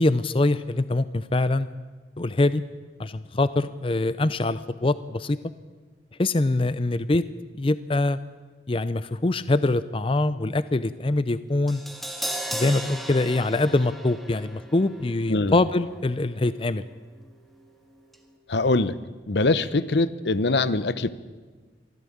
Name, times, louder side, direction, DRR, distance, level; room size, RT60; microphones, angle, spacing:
voice 1, 0.0-1.7 2.2-2.6 3.0-5.4 6.2-7.2 7.6-8.2 8.7-11.8 12.5-16.8, left 2 dB, 30° left, 14 dB, 0.5 m, -24 dB
Crash cymbal, 11.7-17.8 18.1-18.2, equal, ahead, 1.9 m, -37 dB
voice 2, 15.3-15.6 18.5-19.0 19.3-21.1, left 2 dB, 70° left, 15 dB, 0.9 m, -23 dB
24.5 x 15.0 x 8.6 m, 1.4 s
head